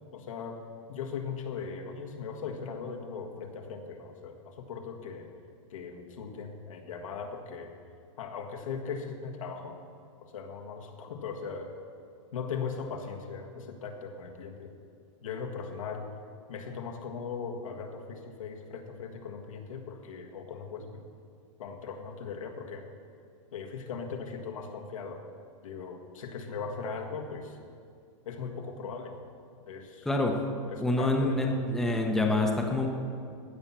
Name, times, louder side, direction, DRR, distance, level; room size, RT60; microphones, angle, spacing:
voice 1, 0.1-0.6 0.9-5.3 5.7-7.8 8.2-9.8 10.2-11.8 12.3-14.8 15.2-16.1 16.5-21.1 21.6-22.9 23.5-25.3 25.6-27.6 28.3-29.2 29.7-30.1 30.7-31.6, left 5 dB, 85° left, 2 dB, 1.7 m, -39 dB
voice 2, 30.8-32.9, left 2 dB, ahead, 1 dB, 0.7 m, -26 dB
15.5 x 5.6 x 7.4 m, 2.3 s
supercardioid pair, 165°, 17 cm